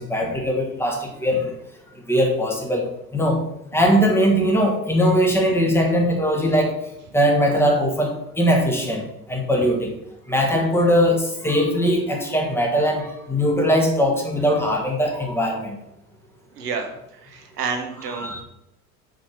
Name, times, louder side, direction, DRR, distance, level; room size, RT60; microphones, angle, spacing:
voice 1, 0.0-1.5 2.1-2.8 3.1-3.4 3.7-6.7 7.1-9.0 9.3-9.9 10.3-15.8 18.0-18.4, equal, 5° left, 1 dB, 1.5 m, -20 dB
voice 2, 16.5-16.9 17.2-18.3, right 5 dB, 75° right, 3 dB, 1.2 m, -29 dB
5.2 x 4.4 x 5.5 m, 0.81 s
figure-of-eight pair, 70°, 47 cm